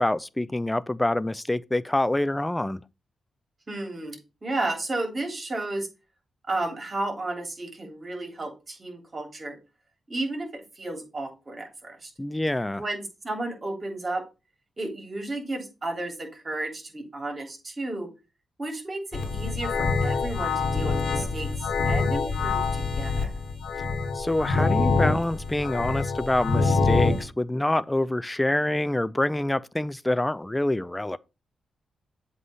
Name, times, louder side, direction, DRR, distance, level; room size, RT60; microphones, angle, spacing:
voice 1, 0.0-2.8 12.2-12.8 24.1-31.2, left 1 dB, 15° left, 0.4 m, -26 dB
voice 2, 3.7-5.9 6.5-9.6 10.1-12.1 12.8-14.2 14.8-18.1 18.6-21.5 21.9-23.3, right 2 dB, 40° right, 3.1 m, -33 dB
sound 1, 19.1-27.2, left 4 dB, 75° left, 1.7 m, -25 dB
7.7 x 3.2 x 5.5 m
cardioid pair, 55°, 0 cm